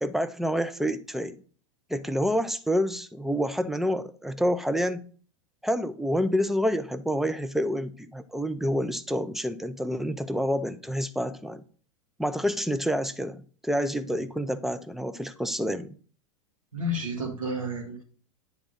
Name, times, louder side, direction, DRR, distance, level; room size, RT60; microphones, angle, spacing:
voice 1, 0.0-1.4 1.9-5.1 5.6-11.6 12.2-15.9, equal, ahead, 0.4 m, -28 dB
voice 2, 16.7-18.0, equal, 90° right, 1.9 m, -31 dB
9.7 x 3.5 x 3.8 m
hypercardioid pair, 95°, 17 cm